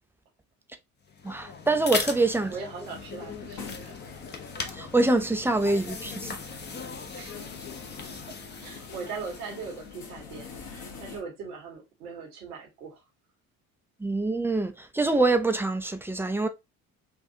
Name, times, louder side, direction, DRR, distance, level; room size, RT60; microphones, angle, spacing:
sound 1, 1.0-10.9, left 4 dB, 25° left, 0.7 m, -39 dB
voice 1, 1.2-2.5 4.7-6.3 14.0-16.5, right 2 dB, 5° right, 0.5 m, -25 dB
voice 2, 2.0-4.0 7.1-7.9 8.3-13.0, right 5 dB, 80° right, 1.4 m, -41 dB
sound 2, 2.8-11.2, left 5 dB, 50° left, 1.5 m, -45 dB
4.2 x 2.6 x 2.7 m
hypercardioid pair, 55°, 45 cm